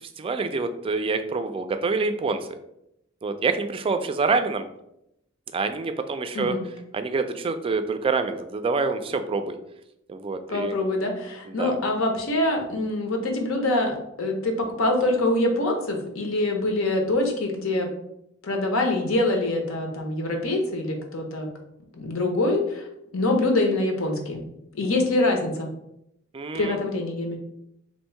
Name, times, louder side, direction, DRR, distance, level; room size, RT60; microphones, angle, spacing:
voice 1, 0.2-2.6 3.2-4.7 5.5-6.5 6.9-9.6 10.1-10.7 11.5-11.8 26.3-26.8, right 4 dB, 25° right, 9 dB, 0.3 m, -26 dB
voice 2, 10.5-17.9 18.4-21.5 21.9-22.9 23.1-24.4 24.7-25.7 26.5-27.4, left 2 dB, 85° left, 3 dB, 0.8 m, -25 dB
3.0 x 2.7 x 4.4 m, 0.80 s
head